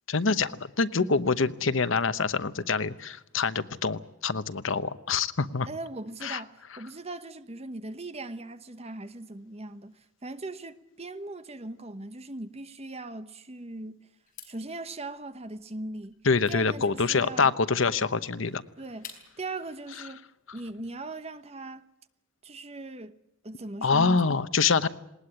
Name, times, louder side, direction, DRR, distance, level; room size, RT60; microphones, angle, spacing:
voice 1, 0.1-5.7 6.2-6.4 16.2-18.6 23.8-24.9, left 4 dB, 80° left, 1.0 m, -25 dB
voice 2, 1.0-1.3 5.7-14.1 14.4-16.2 16.5-17.5 18.8-20.2 20.5-21.8 22.4-23.1 23.4-24.3, right 2 dB, 30° right, 1.0 m, -39 dB
sound 1, 14.2-19.5, left 7 dB, 45° left, 5.0 m, -51 dB
19.5 x 19.5 x 9.9 m
head